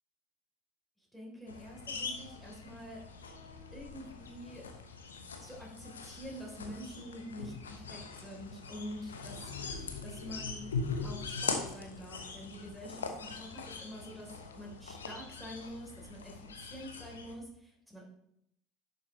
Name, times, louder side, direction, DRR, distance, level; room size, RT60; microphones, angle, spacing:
voice 1, 1.1-3.0 3.7-4.7 5.4-9.5 10.0-10.7 11.0-18.1, equal, ahead, -3 dB, 3.4 m, -46 dB
sound 1, 1.5-17.3, left 4 dB, 85° left, 0.9 m, -42 dB
11.0 x 6.4 x 3.1 m, 0.76 s
figure-of-eight pair, 70°, 0 cm